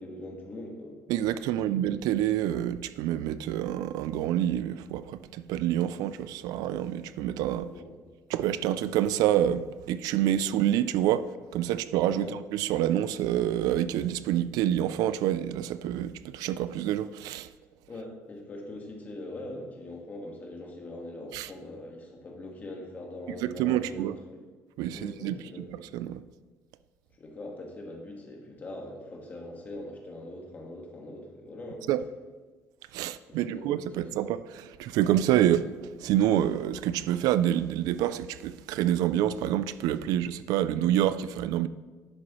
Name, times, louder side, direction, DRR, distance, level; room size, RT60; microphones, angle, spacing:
voice 1, 0.0-1.0 1.5-1.6 7.6-8.0 11.6-11.7 12.1-12.4 17.9-24.4 24.9-25.7 27.2-31.8 33.3-34.1, left 1 dB, 25° left, 1.5 m, -42 dB
voice 2, 1.1-7.7 8.3-17.5 21.3-21.5 23.4-24.1 24.8-25.4 25.8-26.2 31.9-32.0 32.9-41.7, right 11 dB, 85° right, 0.3 m, -27 dB
10.5 x 7.5 x 3.1 m
cardioid pair, 160°, 6 cm